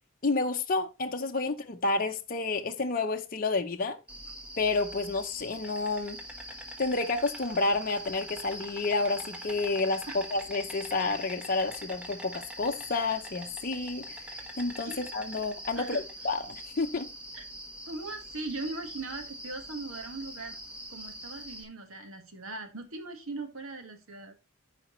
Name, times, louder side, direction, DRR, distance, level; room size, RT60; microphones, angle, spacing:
voice 1, 0.2-4.0 4.6-6.2 6.8-17.1, left 3 dB, 45° left, 0.8 m, -30 dB
Insect, 4.1-21.6, equal, 5° right, 1.3 m, -43 dB
voice 2, 17.9-20.6 20.9-24.3, right 3 dB, 85° right, 1.6 m, -39 dB
13.5 x 5.1 x 3.1 m
head